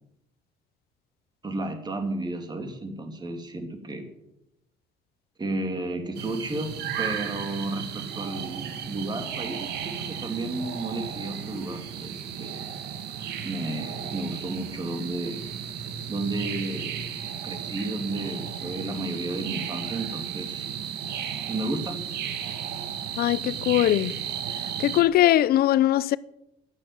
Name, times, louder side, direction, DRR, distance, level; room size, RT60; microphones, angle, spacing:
voice 1, 1.4-4.1 5.4-12.7 13.4-15.5 16.1-17.0 17.4-20.7 21.5-22.0, right 2 dB, 25° right, 2.8 m, -32 dB
sound 1, 6.1-25.0, right 8 dB, 75° right, 1.7 m, -34 dB
voice 2, 23.2-24.1 24.8-26.2, left 13 dB, 65° left, 0.7 m, -21 dB
11.5 x 10.5 x 9.5 m
cardioid pair, 110°, 17 cm